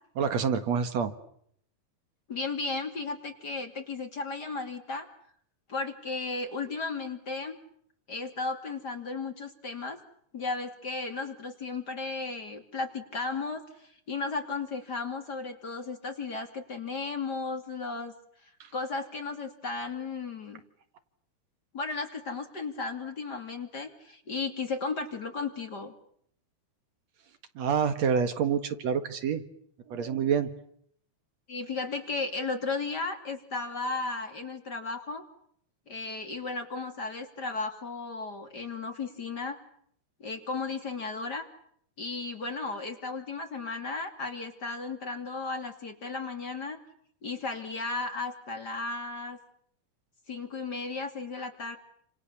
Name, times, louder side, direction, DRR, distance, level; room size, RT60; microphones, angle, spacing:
voice 1, 0.2-1.1 27.6-29.4 29.9-30.5, right 7 dB, 65° right, 9 dB, 2.7 m, -27 dB
voice 2, 2.3-5.1 5.7-7.6 8.1-10.0 10.3-18.1 18.7-20.6 21.7-25.9 31.5-35.2 35.9-39.6 40.2-41.5 42.0-46.8 47.2-49.4 50.3-51.8, left 3 dB, 35° left, 6 dB, 3.1 m, -35 dB
29.5 x 27.5 x 7.1 m, 0.68 s
omnidirectional pair, 3.4 m